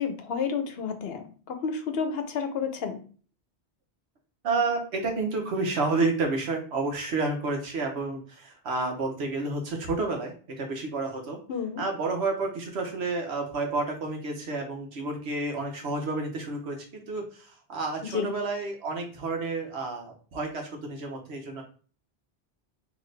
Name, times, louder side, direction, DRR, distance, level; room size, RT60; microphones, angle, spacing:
voice 1, 0.0-3.0 11.5-11.8 18.1-18.3, left 6 dB, 70° left, 7 dB, 0.9 m, -30 dB
voice 2, 4.4-11.4 11.8-21.6, right 3 dB, 85° right, 3 dB, 1.2 m, -30 dB
3.9 x 2.9 x 3.3 m, 0.40 s
omnidirectional pair, 1.1 m